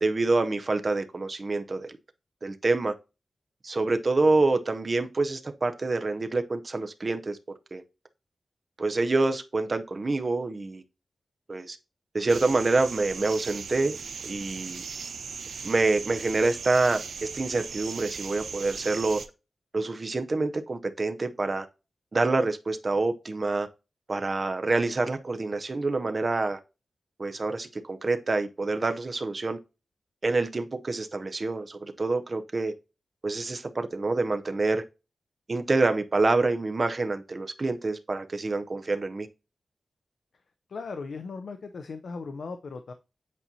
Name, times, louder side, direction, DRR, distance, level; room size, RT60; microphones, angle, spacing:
voice 1, 0.0-2.0 2.4-2.9 3.6-7.4 7.7-7.8 8.8-10.8 11.5-11.8 12.1-14.0 14.2-14.8 15.6-19.2 19.7-21.7 22.1-23.7 24.1-26.6 27.2-29.6 30.2-32.7 33.2-34.8 35.5-39.3, right 3 dB, 30° right, 0.6 m, -27 dB
sound 1, 12.3-19.3, right 5 dB, 85° right, 0.6 m, -38 dB
voice 2, 40.7-42.9, left 4 dB, 65° left, 0.5 m, -37 dB
8.3 x 4.3 x 2.7 m
wide cardioid pair, 180°, 0 cm